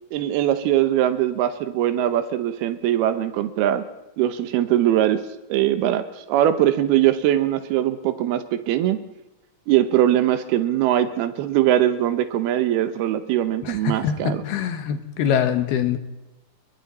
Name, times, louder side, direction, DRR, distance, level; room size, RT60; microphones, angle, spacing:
voice 1, 0.1-3.8 4.2-5.2 5.5-9.0 9.7-14.4, right 12 dB, 85° right, 10 dB, 3.0 m, -21 dB
voice 2, 13.6-16.0, left 8 dB, 85° left, 8 dB, 3.4 m, -24 dB
29.0 x 23.0 x 4.2 m, 0.97 s
omnidirectional pair, 4.4 m